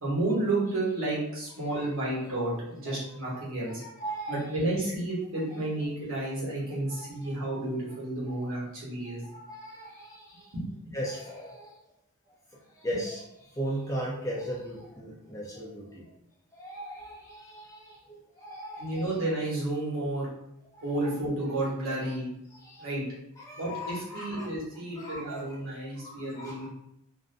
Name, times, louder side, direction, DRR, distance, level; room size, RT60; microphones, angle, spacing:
voice 1, 0.0-3.8 4.3-9.2 10.5-10.7 18.8-20.3 20.8-22.3 22.8-23.0 23.5-26.7, right 2 dB, 65° right, -6 dB, 1.0 m, -31 dB
voice 2, 3.7-4.4 6.9-7.0 9.0-10.5 10.9-11.7 12.8-13.2 13.6-16.0 16.5-19.1 20.7-21.0 22.6-23.1 23.4-24.5 25.0-25.4 26.0-26.7, equal, 15° left, -5 dB, 0.5 m, -38 dB
2.5 x 2.1 x 2.5 m, 0.78 s
head